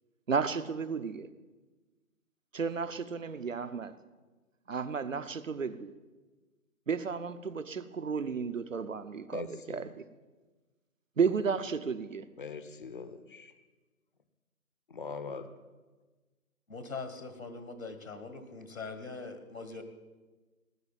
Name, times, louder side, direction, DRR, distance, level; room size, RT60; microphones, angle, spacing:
voice 1, 0.3-1.3 2.5-3.9 4.7-5.9 6.9-10.0 11.2-12.3, right 5 dB, 60° right, 1.0 m, -33 dB
voice 2, 9.3-9.8 12.4-13.5 14.9-15.5, left 4 dB, 35° left, 0.9 m, -41 dB
voice 3, 16.7-19.8, left 4 dB, 65° left, 1.8 m, -42 dB
18.0 x 7.8 x 9.1 m
figure-of-eight pair, 145°, 44 cm